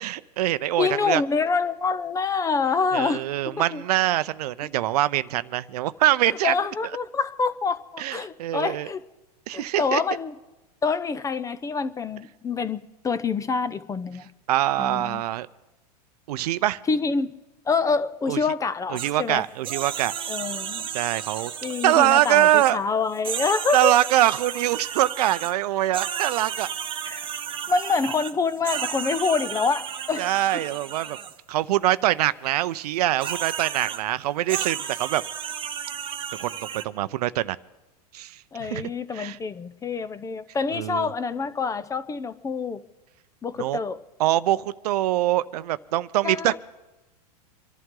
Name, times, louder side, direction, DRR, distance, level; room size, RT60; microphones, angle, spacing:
voice 1, 0.0-1.2 2.9-6.5 8.0-8.9 9.5-10.0 14.5-15.5 16.3-16.8 18.3-18.4 18.9-20.1 20.9-21.5 21.8-22.8 23.7-26.7 30.2-31.2 31.5-35.2 36.3-37.6 38.1-39.4 40.7-41.1 43.6-43.8 44.2-46.6, right 14 dB, 70° right, 16 dB, 0.6 m, -24 dB
voice 2, 0.8-3.2 3.5-3.8 6.4-9.0 9.5-10.3 10.8-14.3 14.8-15.2 16.9-17.3 17.7-19.4 20.3-20.9 21.6-24.0 27.0-27.3 27.7-30.6 38.5-42.8 43.4-44.0 46.2-46.6, left 4 dB, 15° left, 14 dB, 0.6 m, -26 dB
sound 1, 19.0-19.1 19.6-22.7 23.1-25.5 25.9-31.4 33.2-34.0 34.5-36.8, right 8 dB, 25° right, 1.0 m, -33 dB
26.5 x 11.5 x 3.8 m, 1.0 s
hypercardioid pair, 115°, 21 cm